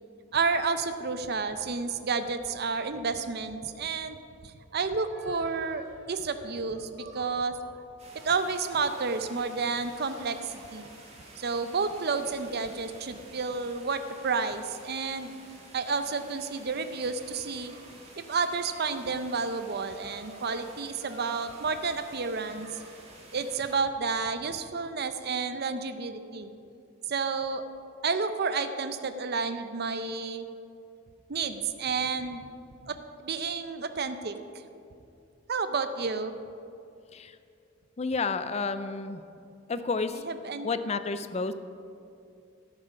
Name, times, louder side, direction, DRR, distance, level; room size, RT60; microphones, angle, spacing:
voice 1, 0.3-7.5 8.2-10.9 11.4-15.3 15.7-17.7 18.3-22.7 23.3-26.5 27.1-27.6 28.0-30.5 31.3-32.5 32.9-33.0 33.2-34.3 35.5-36.3 40.1-40.7, right 4 dB, 55° right, 10 dB, 0.6 m, -31 dB
sound 1, 5.1-9.5 9.9-11.5 12.1-13.0 13.4-14.4 15.0-17.9 18.5-19.5 19.8-23.2, right 1 dB, 75° right, 2.7 m, -52 dB
sound 2, 8.0-23.8, right 2 dB, 30° right, 1.9 m, -51 dB
voice 2, 38.0-39.2 39.7-40.2 40.6-41.5, left 4 dB, 30° left, 11 dB, 0.5 m, -30 dB
12.0 x 8.9 x 5.3 m, 2.6 s
head